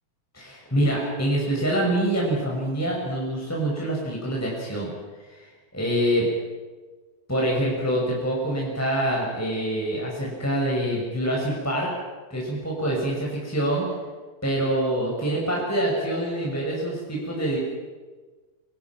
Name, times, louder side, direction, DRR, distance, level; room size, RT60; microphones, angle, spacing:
voice 1, 0.3-4.9 5.2-6.3 7.3-11.9 12.3-13.9 14.4-17.6, right 1 dB, 5° left, -3 dB, 5.7 m, -25 dB
30.0 x 26.5 x 6.1 m, 1.3 s
omnidirectional pair, 4.4 m